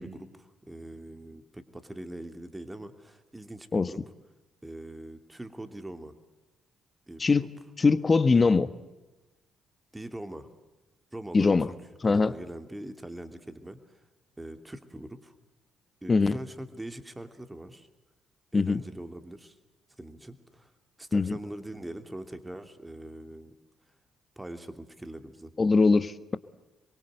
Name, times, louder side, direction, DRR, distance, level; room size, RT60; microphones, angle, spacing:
voice 1, 0.0-4.0 4.6-6.1 7.1-7.5 8.3-8.6 9.9-10.5 11.1-11.8 12.0-14.0 14.4-15.3 16.0-17.9 18.5-19.6 20.0-20.7 21.0-23.5 24.4-25.5, right 1 dB, 15° right, 8 dB, 2.9 m, -42 dB
voice 2, 7.8-8.7 11.3-11.7 12.0-12.3 16.1-16.4 18.5-18.8 21.1-21.4 25.6-26.4, left 4 dB, 35° left, 14 dB, 1.3 m, -22 dB
27.0 x 23.0 x 8.0 m, 1.1 s
hypercardioid pair, 45°, 0 cm